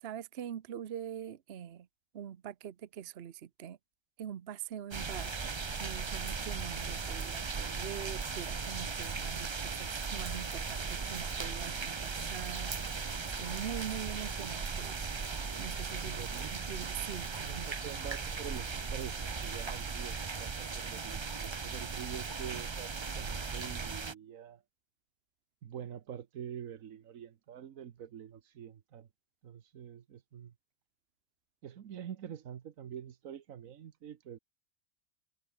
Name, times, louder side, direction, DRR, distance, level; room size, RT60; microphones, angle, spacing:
voice 1, 0.0-1.9 2.1-3.8 4.2-5.5 5.8-15.1 15.6-16.2 16.5-17.3 17.5-17.7, right 9 dB, 55° right, 1.0 m, -43 dB
sound 1, 4.9-24.1, right 5 dB, 30° right, 0.6 m, -37 dB
sound 2, 10.8-19.8, equal, ahead, 7.5 m, -65 dB
voice 2, 16.0-16.7 17.2-24.6 25.6-29.1 29.4-30.5 31.6-34.4, right 9 dB, 85° right, 1.4 m, -46 dB
omnidirectional pair, 1.4 m